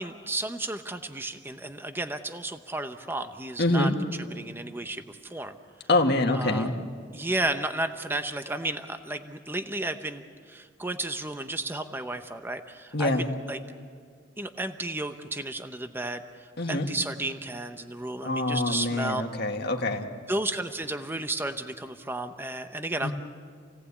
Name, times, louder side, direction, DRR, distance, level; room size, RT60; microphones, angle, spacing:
voice 1, 0.0-3.9 4.3-5.6 6.3-6.7 7.1-13.6 14.4-19.2 20.3-23.1, right 2 dB, 10° right, 8 dB, 0.9 m, -33 dB
voice 2, 3.6-3.9 5.9-6.7 12.9-13.2 16.6-16.9 18.2-20.1 23.0-23.1, left 2 dB, 55° left, 3 dB, 1.9 m, -25 dB
28.5 x 17.5 x 8.5 m, 2.1 s
head